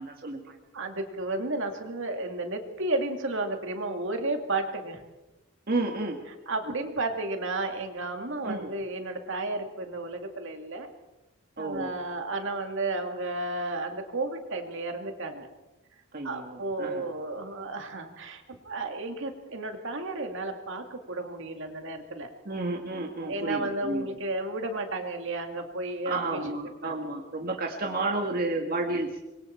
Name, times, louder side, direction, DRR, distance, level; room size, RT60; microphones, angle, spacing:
voice 1, 0.0-0.6 5.7-6.2 8.4-8.7 11.6-11.9 16.1-17.0 22.5-24.1 26.1-29.2, right 2 dB, 45° right, 1 dB, 1.8 m, -31 dB
voice 2, 0.7-5.0 6.5-10.9 11.6-15.5 16.2-22.3 23.2-26.4 26.8-26.9 28.0-28.5, right 2 dB, 60° right, 5 dB, 2.3 m, -33 dB
26.0 x 22.5 x 4.5 m, 1.0 s
head